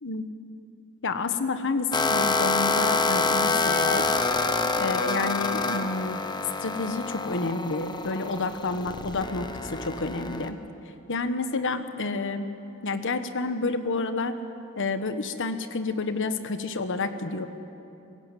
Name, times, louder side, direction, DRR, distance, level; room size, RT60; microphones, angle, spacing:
voice 1, 1.0-4.1 4.8-6.2 6.6-10.6 11.1-12.5 12.8-14.3 14.8-17.5, left 3 dB, 60° left, 9 dB, 1.2 m, -29 dB
sound 1, 1.9-10.5, left 3 dB, 20° left, 0.9 m, -27 dB
22.5 x 15.5 x 9.2 m, 2.9 s
head